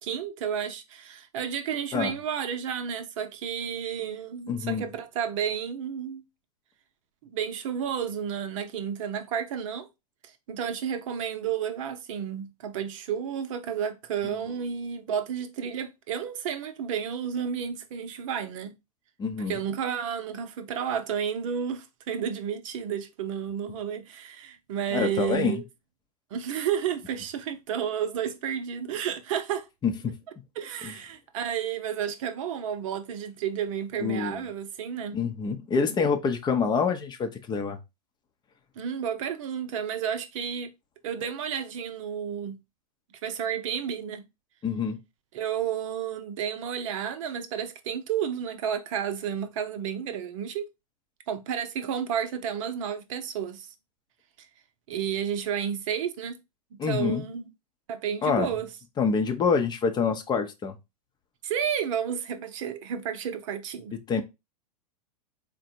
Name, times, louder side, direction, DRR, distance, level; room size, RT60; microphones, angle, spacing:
voice 1, 0.0-6.2 7.2-9.9 10.5-18.7 19.5-25.6 26.3-29.7 30.6-35.2 38.8-40.7 41.0-42.6 43.2-44.2 45.3-50.7 51.3-53.7 54.9-56.4 56.7-57.5 57.9-58.7 61.4-63.9, right 8 dB, 55° right, 0.7 m, -31 dB
voice 2, 4.5-4.8 19.2-19.6 24.9-25.6 29.8-30.1 30.8-30.9 34.0-34.4 35.1-37.8 44.6-45.0 56.8-57.2 58.2-58.5 59.0-60.8 64.1-64.2, left 5 dB, 20° left, 0.7 m, -26 dB
4.1 x 2.2 x 4.4 m
figure-of-eight pair, 100°, 20 cm